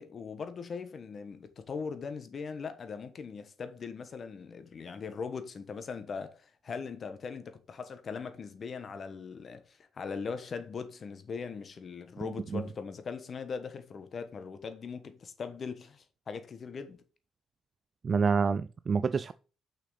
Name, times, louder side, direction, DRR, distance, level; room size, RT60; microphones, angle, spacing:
voice 1, 0.0-17.0, left 5 dB, 45° left, 1.2 m, -40 dB
voice 2, 18.0-19.3, right 5 dB, 40° right, 0.3 m, -27 dB
6.0 x 5.9 x 4.1 m
cardioid pair, 80°, 0 cm